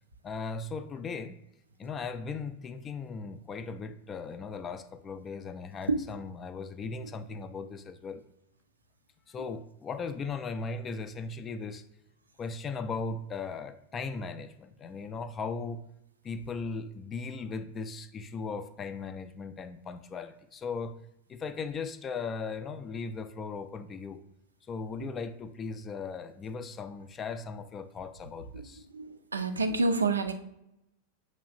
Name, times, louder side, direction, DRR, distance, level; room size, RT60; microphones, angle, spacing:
voice 1, 0.2-1.4 1.8-8.2 9.3-11.8 12.4-15.8 16.2-20.9 21.3-24.2 24.7-28.9, left 4 dB, 25° left, 11 dB, 0.3 m, -38 dB
voice 2, 28.9-30.4, right 3 dB, 75° right, 7 dB, 0.4 m, -28 dB
6.6 x 3.1 x 2.5 m, 0.84 s
figure-of-eight pair, 90°, 0 cm